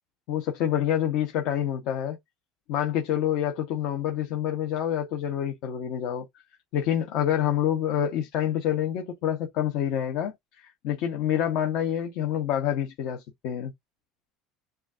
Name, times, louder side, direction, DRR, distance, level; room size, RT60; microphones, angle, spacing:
voice 1, 0.3-2.2 2.7-6.3 6.7-13.7, left 10 dB, 65° left, 1.0 m, -27 dB
6.9 x 2.5 x 2.5 m
supercardioid pair, 130°, 0 cm